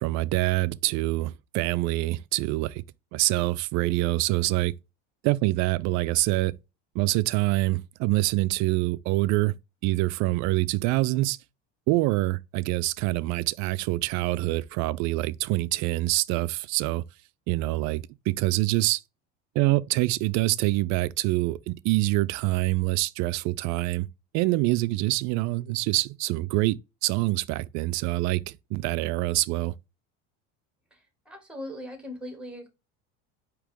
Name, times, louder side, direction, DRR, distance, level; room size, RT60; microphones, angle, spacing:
voice 1, 0.0-2.8 3.1-4.7 5.2-6.5 6.9-9.6 9.8-11.4 11.9-17.0 17.5-19.0 19.6-24.1 24.3-29.7, right 19 dB, 55° right, 0.4 m, -25 dB
voice 2, 31.2-32.7, left 1 dB, 5° right, 1.7 m, -39 dB
4.8 x 3.0 x 3.7 m
supercardioid pair, 120°, 35 cm